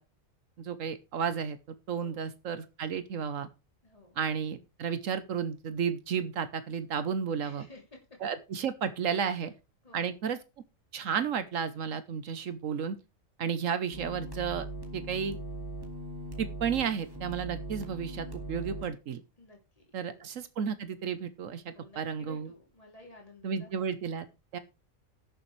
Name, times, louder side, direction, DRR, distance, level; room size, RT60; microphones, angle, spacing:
voice 1, 0.6-1.6 1.9-3.5 4.2-7.7 8.2-9.5 9.9-10.4 10.9-13.0 13.4-14.6 14.9-15.4 16.4-19.2 19.9-22.5 23.4-24.2 24.5-24.6, right 7 dB, 75° right, 12 dB, 1.2 m, -32 dB
voice 2, 1.9-2.3 3.8-4.2 7.4-8.0 9.2-9.4 9.8-10.1 19.4-20.2 21.7-23.9, left 2 dB, 25° left, 0 dB, 3.0 m, -53 dB
sound 1, 13.9-18.9, right 1 dB, 15° right, 1.9 m, -40 dB
17.0 x 6.9 x 3.2 m, 0.27 s
omnidirectional pair, 1.4 m